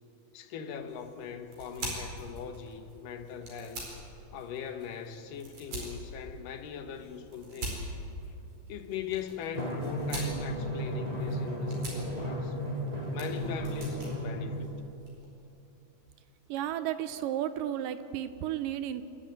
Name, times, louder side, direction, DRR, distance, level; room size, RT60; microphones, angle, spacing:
voice 1, 0.3-3.9 4.3-8.0 8.7-12.6 13.1-14.8, left 7 dB, 70° left, 2.6 m, -40 dB
sound 1, 0.7-15.3, right 2 dB, 55° right, 6.1 m, -44 dB
Drum, 9.5-14.6, equal, 15° right, 1.9 m, -34 dB
voice 2, 16.5-19.0, right 11 dB, 80° right, 2.0 m, -33 dB
27.5 x 12.5 x 9.3 m
omnidirectional pair, 4.4 m